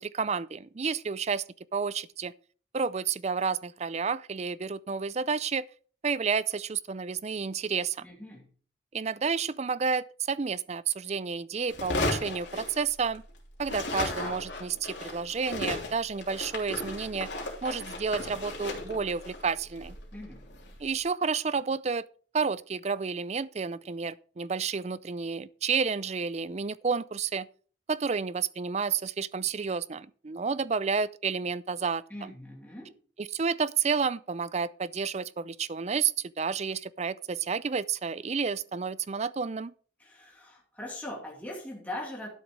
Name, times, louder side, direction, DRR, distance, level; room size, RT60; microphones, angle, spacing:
voice 1, 0.0-1.4 1.7-2.3 2.7-5.7 6.0-8.0 8.9-13.2 13.6-17.3 17.6-20.0 20.8-22.0 22.3-27.5 27.9-32.3 33.2-39.7, right 5 dB, 35° right, 0.4 m, -30 dB
voice 2, 8.0-8.5 20.1-20.5 32.1-32.9 40.0-42.3, left 1 dB, 10° left, 2.6 m, -41 dB
sound 1, 11.7-13.3 13.6-20.8, left 2 dB, 75° left, 3.2 m, -35 dB
12.0 x 6.5 x 4.7 m
head